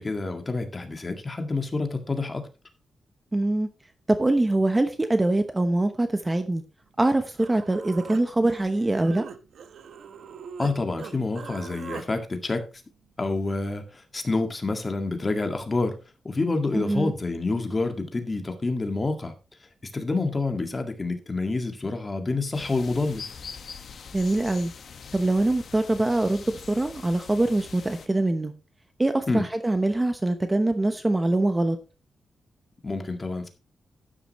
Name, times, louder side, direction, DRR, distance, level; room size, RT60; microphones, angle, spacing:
voice 1, 0.0-2.4 10.6-12.7 13.2-13.8 14.1-16.0 16.3-19.3 19.9-23.2 29.3-29.5 32.8-33.5, left 3 dB, 25° left, 1.9 m, -28 dB
voice 2, 3.3-3.7 4.1-6.6 7.0-9.2 16.7-17.1 24.1-24.7 25.1-28.5 29.0-31.8, right 2 dB, 15° right, 0.9 m, -23 dB
Human voice, 7.4-10.7 11.0-12.1, right 6 dB, 75° right, 1.1 m, -41 dB
sound 1, 22.5-28.1, left 6 dB, 60° left, 1.4 m, -43 dB
12.5 x 10.0 x 3.1 m
wide cardioid pair, 140°, 0 cm